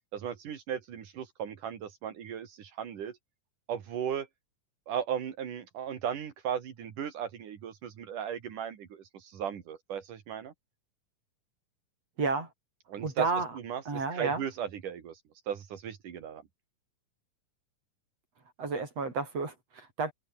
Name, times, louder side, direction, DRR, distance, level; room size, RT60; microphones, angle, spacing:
voice 1, 0.1-3.2 3.7-4.3 4.9-10.5 12.9-13.3 13.6-15.2 15.5-16.4, right 8 dB, 80° right, 3.9 m, -36 dB
voice 2, 12.2-12.5 13.0-13.6 13.9-14.4 18.6-20.1, right 4 dB, 50° right, 7.0 m, -31 dB
omnidirectional pair, 3.6 m